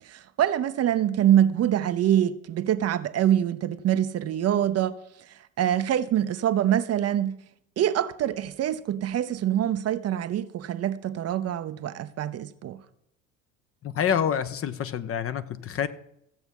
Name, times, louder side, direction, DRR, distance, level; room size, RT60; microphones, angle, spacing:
voice 1, 0.0-5.0 5.6-7.3 7.8-12.8, right 11 dB, 35° right, 0.8 m, -25 dB
voice 2, 13.8-15.9, left 8 dB, 35° left, 0.9 m, -27 dB
15.0 x 8.0 x 5.4 m
figure-of-eight pair, 65°, 41 cm